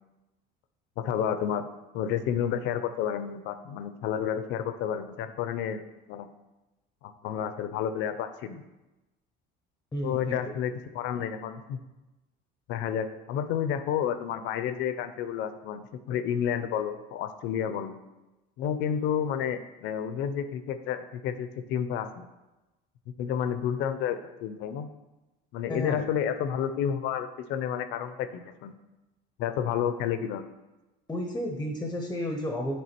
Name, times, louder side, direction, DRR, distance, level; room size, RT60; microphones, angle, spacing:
voice 1, 1.0-1.6 1.9-5.8 6.1-6.3 7.0-8.6 10.0-11.8 12.7-18.0 18.6-22.3 23.2-24.9 25.5-28.7 29.4-30.4, left 9 dB, 65° left, 11 dB, 0.6 m, -30 dB
voice 2, 9.9-10.5 25.7-26.1 31.1-32.8, left 1 dB, 10° left, 3 dB, 0.6 m, -32 dB
9.3 x 3.4 x 4.4 m, 1.0 s
cardioid pair, 160°, 20 cm